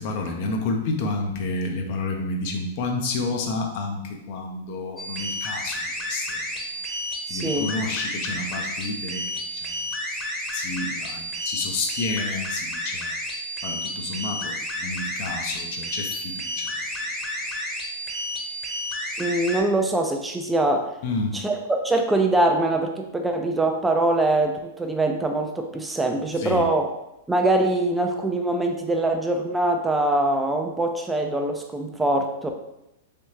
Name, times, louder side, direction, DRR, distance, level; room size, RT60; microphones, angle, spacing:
voice 1, 0.0-6.6 7.3-9.8 10.5-13.2 13.6-16.7 21.0-21.4 26.4-26.6, left 3 dB, 55° left, 3 dB, 0.6 m, -30 dB
sound 1, 5.0-19.6, left 1 dB, 10° left, 0.8 m, -31 dB
voice 2, 7.3-7.7 19.2-21.0 21.3-26.9 27.3-32.5, right 2 dB, 10° right, 3 dB, 0.3 m, -23 dB
3.4 x 2.7 x 2.9 m, 0.88 s
hypercardioid pair, 120°, 0 cm